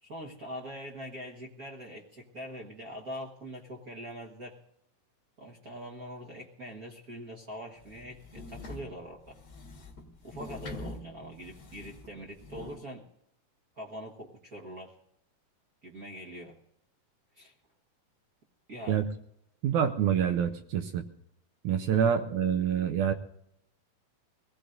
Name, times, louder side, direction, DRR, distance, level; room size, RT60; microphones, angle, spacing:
voice 1, 0.0-4.6 5.4-9.4 10.2-13.0 13.7-14.9 15.8-16.6 17.3-17.5 18.7-19.0 21.9-22.1, equal, 55° right, -1 dB, 1.0 m, -43 dB
sound 1, 7.8-12.8, left 2 dB, 40° left, 1.5 m, -45 dB
voice 2, 19.6-21.0 21.6-23.1, right 8 dB, 75° right, 7 dB, 1.9 m, -26 dB
23.5 x 17.0 x 2.6 m, 0.76 s
omnidirectional pair, 4.0 m